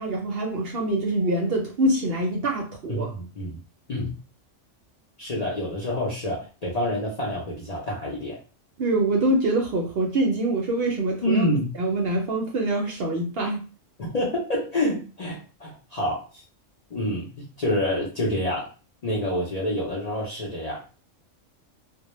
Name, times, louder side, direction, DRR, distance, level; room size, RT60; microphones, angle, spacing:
voice 1, 0.0-3.1 8.8-11.5 11.8-13.6, right 2 dB, 60° right, 1 dB, 0.7 m, -25 dB
voice 2, 2.9-3.6 3.9-4.2 5.2-8.4 11.2-11.7 14.0-16.4 16.9-18.7 19.0-20.8, left 1 dB, 45° left, -4 dB, 0.5 m, -27 dB
2.1 x 2.1 x 2.9 m, 0.35 s
omnidirectional pair, 1.3 m